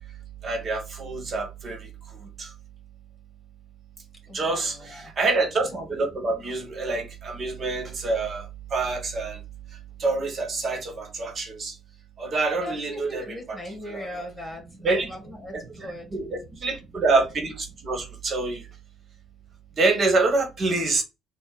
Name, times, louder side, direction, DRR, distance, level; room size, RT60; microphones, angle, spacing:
voice 1, 0.4-1.9 2.4-2.5 4.3-8.5 8.7-9.4 10.0-11.7 12.2-13.6 13.9-14.2 14.8-15.1 15.5-18.6 19.8-21.0, right 3 dB, 45° right, 1.1 m, -26 dB
voice 2, 4.3-5.1 12.6-16.1, equal, 10° left, 1.9 m, -39 dB
4.2 x 2.1 x 3.9 m
figure-of-eight pair, 45°, 0 cm